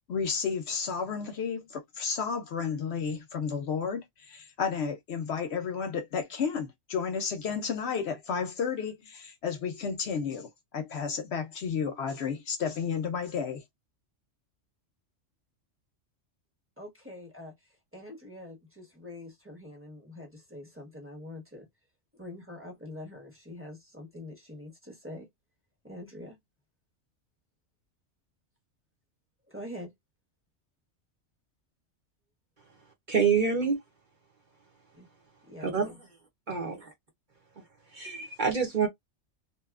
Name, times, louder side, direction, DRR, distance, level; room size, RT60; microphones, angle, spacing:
voice 1, 0.1-13.6, left 6 dB, 65° left, 0.7 m, -32 dB
voice 2, 16.8-21.7 22.1-25.3 25.8-26.4 29.5-29.9 34.9-35.1 35.4-36.0, left 1 dB, 10° right, 0.8 m, -45 dB
voice 3, 33.1-33.8 35.6-35.9 36.5-36.9 37.9-38.9, right 6 dB, 45° right, 0.8 m, -27 dB
2.8 x 2.3 x 2.3 m
omnidirectional pair, 1.3 m